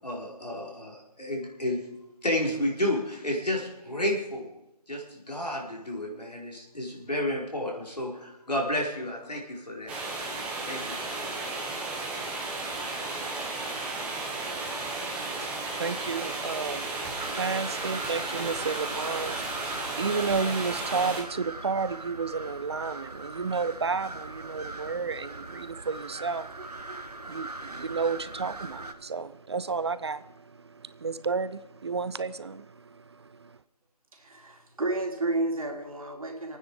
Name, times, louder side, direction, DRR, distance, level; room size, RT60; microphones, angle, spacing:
voice 1, 0.0-1.8 2.2-4.5 4.9-10.0 10.7-11.0, left 1 dB, 85° left, -1 dB, 4.5 m, -31 dB
sound 1, 9.9-21.2, right 3 dB, 5° right, 1.3 m, -34 dB
voice 2, 15.4-33.6, right 4 dB, 45° right, 15 dB, 0.6 m, -32 dB
sound 2, 17.2-28.9, right 2 dB, 80° right, 1.4 m, -41 dB
voice 3, 34.1-36.6, right 2 dB, 60° right, 3 dB, 3.0 m, -31 dB
25.5 x 9.5 x 4.9 m, 0.90 s
figure-of-eight pair, 155°, 20 cm